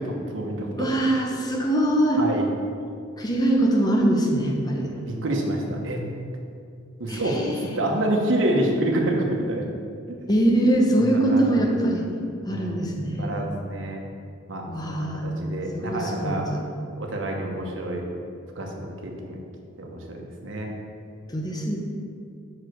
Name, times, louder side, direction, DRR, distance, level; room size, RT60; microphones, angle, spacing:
voice 1, 0.0-0.9 2.2-2.5 5.1-6.0 7.0-9.6 10.1-10.2 11.0-11.7 12.5-12.8 13.2-14.0 14.5-16.5 17.0-18.1 18.6-19.4 19.8-20.7, right 1 dB, 80° right, 0 dB, 1.1 m, -27 dB
voice 2, 0.8-2.2 3.2-4.9 7.1-7.7 10.3-12.0 12.5-13.3 14.7-15.3 15.7-16.6 21.3-21.8, right 1 dB, 20° left, 0 dB, 0.8 m, -23 dB
5.4 x 4.9 x 6.3 m, 2.3 s
head